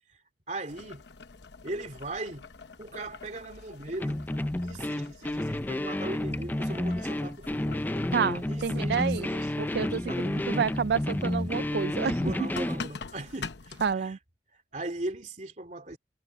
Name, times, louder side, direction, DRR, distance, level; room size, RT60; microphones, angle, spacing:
voice 1, 0.5-1.0 1.6-2.5 2.8-4.2 4.6-7.8 8.5-9.6 10.0-10.2 12.2-14.2 14.7-16.0, right 2 dB, 45° right, 3.0 m, -39 dB
Boiling, 0.7-13.9, left 4 dB, 80° left, 1.0 m, -46 dB
sound 1, 4.0-12.9, left 1 dB, 10° left, 0.4 m, -30 dB
voice 2, 8.1-9.3 9.6-12.3 13.8-14.2, right 6 dB, 65° right, 0.4 m, -29 dB
head